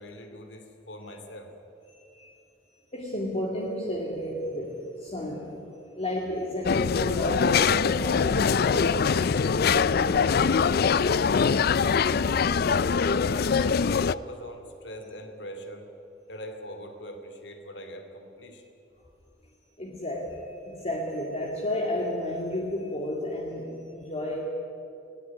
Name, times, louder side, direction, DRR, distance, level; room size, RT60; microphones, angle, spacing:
voice 1, 0.0-1.5 12.9-15.9 16.3-18.6, equal, 75° left, 7 dB, 2.5 m, -41 dB
voice 2, 1.9-2.4 2.9-5.7 5.9-10.9 19.8-24.4, left 1 dB, 35° left, -1 dB, 2.2 m, -32 dB
sound 1, 6.6-14.1, left 6 dB, 55° left, 0.4 m, -23 dB
19.5 x 17.5 x 9.4 m, 3.0 s
head